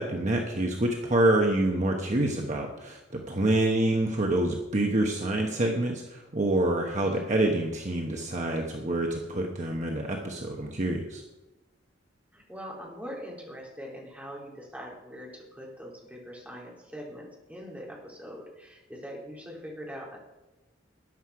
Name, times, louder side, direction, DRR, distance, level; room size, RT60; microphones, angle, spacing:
voice 1, 0.0-11.2, right 1 dB, 40° right, 1 dB, 1.1 m, -27 dB
voice 2, 12.3-20.2, equal, 10° right, -3 dB, 3.4 m, -42 dB
13.5 x 10.0 x 4.8 m, 1.0 s
head